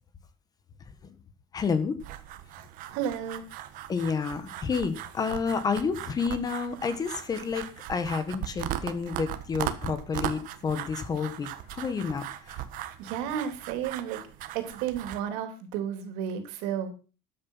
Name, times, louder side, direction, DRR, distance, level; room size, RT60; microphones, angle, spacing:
voice 1, 1.5-2.0 3.9-12.6, left 5 dB, 20° left, 12 dB, 1.4 m, -30 dB
sound 1, 2.0-15.2, right 12 dB, 55° right, 1.5 m, -38 dB
voice 2, 2.9-3.4 13.0-14.2 14.5-16.9, right 9 dB, 80° right, 7 dB, 3.3 m, -32 dB
13.5 x 9.4 x 5.6 m, 0.36 s
cardioid pair, 165°, 17 cm